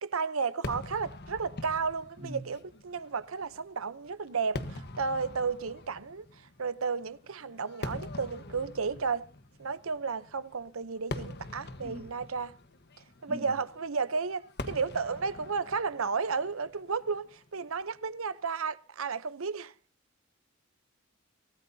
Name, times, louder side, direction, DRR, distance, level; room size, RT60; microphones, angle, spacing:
voice 1, 0.0-6.2 6.6-9.3 9.6-12.5 13.2-19.7, right 5 dB, 80° right, 0.8 m, -33 dB
Fireworks, 0.6-18.0, left 2 dB, 55° left, 1.3 m, -44 dB
voice 2, 2.2-2.5 11.8-12.1 13.3-13.5, right 1 dB, 30° right, 7.9 m, -41 dB
24.0 x 17.5 x 2.8 m
head